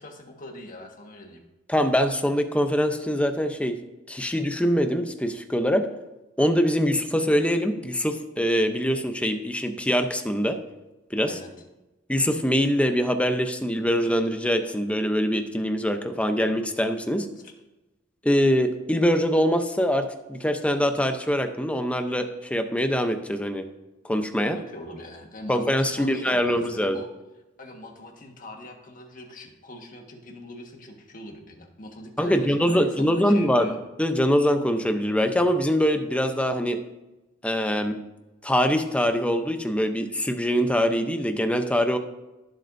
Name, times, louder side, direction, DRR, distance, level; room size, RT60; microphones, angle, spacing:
voice 1, 0.0-1.4 11.2-11.5 24.5-27.1 27.6-33.8, left 1 dB, 45° left, 2 dB, 1.6 m, -42 dB
voice 2, 1.7-3.8 4.1-5.9 6.4-10.6 11.1-11.4 12.1-17.3 18.2-23.6 24.1-24.6 25.5-27.0 32.2-36.8 37.4-38.0 38.4-42.0, equal, 5° left, 7 dB, 0.7 m, -23 dB
16.0 x 7.7 x 2.7 m, 1.0 s
head